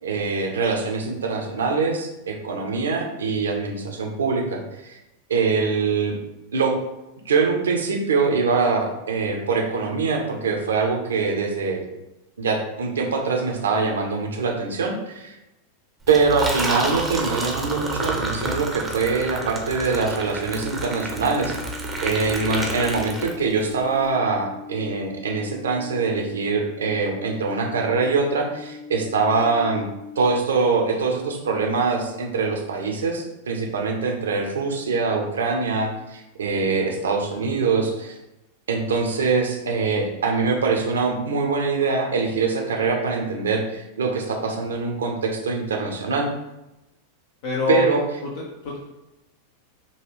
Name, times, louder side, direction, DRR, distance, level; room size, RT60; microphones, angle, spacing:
voice 1, 0.0-5.0 5.3-6.1 6.5-6.8 7.3-11.9 12.4-15.4 16.1-21.6 22.0-29.8 30.2-38.1 38.7-46.3 47.7-48.0, right 4 dB, 65° right, 2 dB, 0.7 m, -23 dB
Liquid, 16.0-23.7, right 2 dB, 10° right, 0.6 m, -29 dB
sound 1, 20.2-30.2, left 5 dB, 75° left, 1.1 m, -40 dB
voice 2, 47.4-47.8 48.4-48.8, left 4 dB, 50° left, -2 dB, 0.6 m, -25 dB
5.3 x 2.3 x 3.1 m, 0.95 s
figure-of-eight pair, 90°, 0 cm